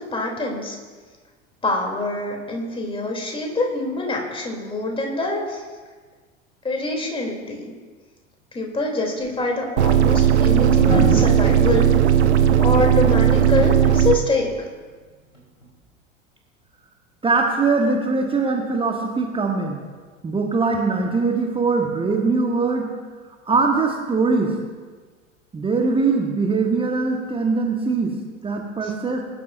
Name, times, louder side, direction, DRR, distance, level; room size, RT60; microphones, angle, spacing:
voice 1, 0.1-0.8 1.6-5.6 6.6-7.7 8.5-11.9 12.6-14.7 28.8-28.9, left 2 dB, 15° left, 0 dB, 3.2 m, -25 dB
sound 1, 9.2-9.4 10.7-13.8 15.3-15.6, right 1 dB, 85° left, 4.4 m, -27 dB
sound 2, 9.8-14.2, right 10 dB, 60° right, 0.9 m, -16 dB
voice 2, 17.2-19.8 20.2-22.9 23.5-24.5 25.5-28.2 28.4-29.2, right 4 dB, 15° right, 2 dB, 1.4 m, -21 dB
21.5 x 12.0 x 2.6 m, 1.4 s
figure-of-eight pair, 80°, 37 cm